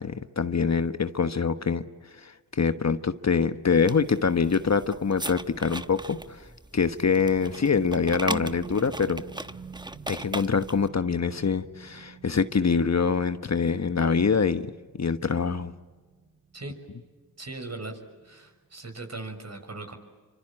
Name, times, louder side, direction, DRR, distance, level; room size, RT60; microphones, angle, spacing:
voice 1, 0.0-1.8 2.1-6.5 6.7-9.2 10.1-14.7 15.0-15.7, left 5 dB, 45° left, 10 dB, 1.3 m, -25 dB
sound 1, 3.7-10.9, right 2 dB, 10° right, 1.1 m, -38 dB
sound 2, 7.1-17.8 18.1-18.5 18.9-19.0, right 5 dB, 65° right, 2.5 m, -48 dB
voice 2, 17.4-19.9, right 2 dB, 40° right, 6 dB, 6.4 m, -39 dB
27.0 x 25.0 x 8.9 m, 1.3 s
supercardioid pair, 40°, 39 cm